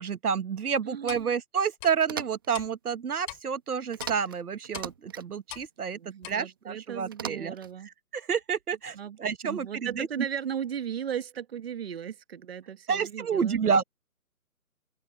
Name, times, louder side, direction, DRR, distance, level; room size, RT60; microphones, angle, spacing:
voice 1, 0.0-6.0 6.3-7.5 8.1-10.1 12.9-13.8, right 6 dB, 80° right, 1.2 m, -29 dB
voice 2, 0.9-1.3 5.9-7.9 8.9-9.2 9.4-13.6, right 8 dB, 40° right, 1.5 m, -36 dB
Clock, 1.1-1.2 1.8-1.9 2.5-2.7 3.3-3.4 4.0-4.1 4.7-4.9 5.5-5.7 6.2-6.3, left 29 dB, 20° left, 3.8 m, -40 dB
sound 1, 2.0-2.6 3.9-4.4 4.6-5.3 7.1-7.7, right 8 dB, 15° right, 0.8 m, -38 dB
open air
hypercardioid pair, 160°, 44 cm